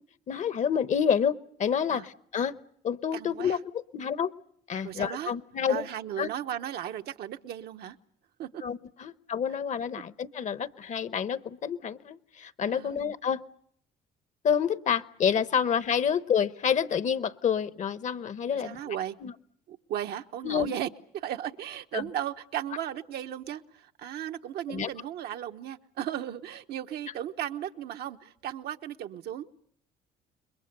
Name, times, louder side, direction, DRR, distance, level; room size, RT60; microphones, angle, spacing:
voice 1, 0.3-2.5 2.8-4.3 4.7-5.9 6.2-6.3 8.6-13.4 14.4-19.0 19.2-19.3 20.4-20.7 21.9-22.0 24.7-24.9, left 7 dB, 45° left, 0.9 m, -28 dB
voice 2, 3.1-3.6 4.8-5.3 5.7-8.0 8.4-8.6 10.0-10.1 12.7-13.0 15.6-15.7 18.5-19.2 19.7-20.9 21.2-29.5, right 11 dB, 70° right, 1.1 m, -36 dB
28.5 x 22.0 x 6.7 m
cardioid pair, 110°, 17 cm